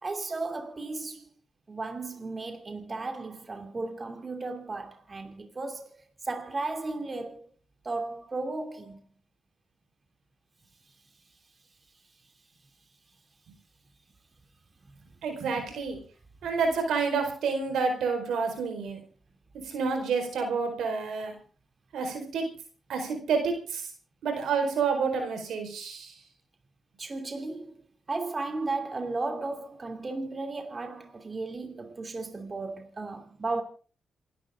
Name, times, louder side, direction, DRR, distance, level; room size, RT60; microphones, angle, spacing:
voice 1, 0.0-1.3 1.7-7.5 7.8-9.0 27.0-27.8 28.1-33.6, right 3 dB, 40° right, 2.8 m, -35 dB
voice 2, 15.2-16.0 16.4-19.0 19.7-21.3 21.9-22.4 22.9-23.8 24.2-26.1, right 5 dB, 80° right, 4.6 m, -29 dB
28.0 x 12.0 x 3.7 m
supercardioid pair, 55°, 0 cm